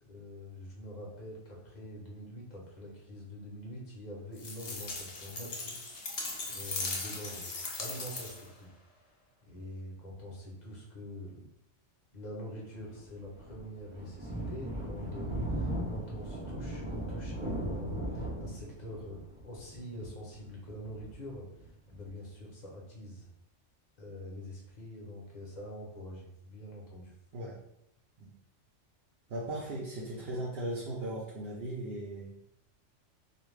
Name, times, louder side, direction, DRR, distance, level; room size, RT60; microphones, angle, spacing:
voice 1, 0.0-5.8 6.4-7.5 7.8-8.7 9.5-11.4 12.1-21.5 21.9-23.3 24.0-27.1, equal, 45° left, -3 dB, 0.7 m, -45 dB
sound 1, 4.4-8.6, left 3 dB, 65° left, 0.3 m, -38 dB
Thunder, 12.9-22.1, right 1 dB, 45° right, 0.4 m, -38 dB
voice 2, 29.3-32.3, right 1 dB, 60° right, -6 dB, 0.7 m, -37 dB
2.4 x 2.3 x 3.1 m, 0.80 s
omnidirectional pair, 1.2 m